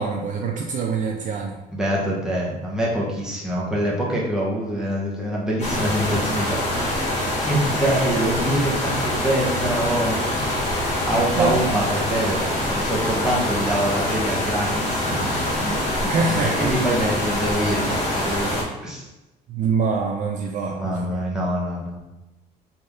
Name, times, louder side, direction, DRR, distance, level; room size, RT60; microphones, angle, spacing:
voice 1, 0.0-1.6 11.4-11.6 16.1-16.7 19.5-21.3, right 5 dB, 50° right, 2 dB, 0.4 m, -25 dB
voice 2, 1.7-10.6 11.0-12.4 12.7-16.0 16.3-18.5 18.8-19.0 20.7-22.0, right 1 dB, 5° right, -5 dB, 1.0 m, -25 dB
sound 1, 5.6-18.6, left 1 dB, 45° left, 1.3 m, -25 dB
3.2 x 2.7 x 3.6 m, 0.98 s
cardioid pair, 110°, 17 cm